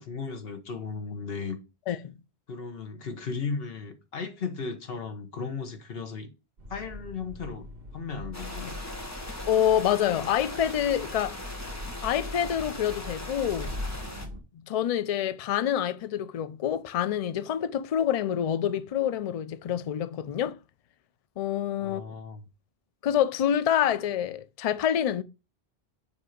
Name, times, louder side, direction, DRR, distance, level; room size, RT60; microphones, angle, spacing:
voice 1, 0.0-1.6 1.9-2.0 2.5-6.3 6.7-7.7 7.9-8.8 21.8-22.4, left 5 dB, 70° left, 1.3 m, -36 dB
sound 1, 6.6-14.4, left 1 dB, 65° right, 1.6 m, -41 dB
sound 2, 8.3-14.3, left 1 dB, 15° left, 1.1 m, -40 dB
voice 2, 9.5-11.4 12.0-13.7 14.5-20.6 21.4-22.0 23.0-25.2, left 10 dB, 50° left, 0.4 m, -27 dB
7.1 x 2.8 x 5.0 m
omnidirectional pair, 1.0 m